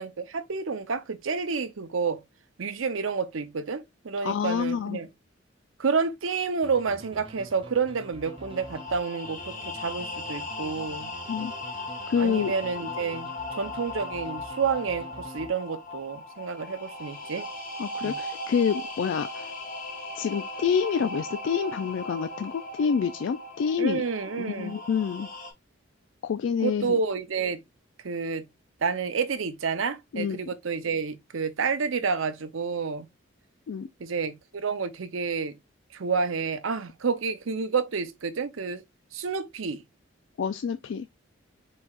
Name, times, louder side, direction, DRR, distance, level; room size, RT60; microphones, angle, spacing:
voice 1, 0.0-2.2 2.6-5.1 5.8-11.1 12.2-17.5 18.0-18.1 23.8-24.8 26.6-27.6 28.0-28.4 28.8-33.0 34.0-35.6 35.9-38.8 39.1-39.8, right 5 dB, 85° right, 0.7 m, -29 dB
voice 2, 4.2-5.0 11.3-11.5 12.1-12.5 17.8-19.5 20.1-24.0 24.4-25.3 26.2-27.0 30.1-30.4 33.7-33.9 40.4-41.1, left 6 dB, 65° left, 0.3 m, -27 dB
sound 1, 6.6-15.9, right 1 dB, 25° right, 0.6 m, -46 dB
sound 2, 8.2-25.5, left 2 dB, 45° left, 1.4 m, -38 dB
4.5 x 4.1 x 2.4 m
head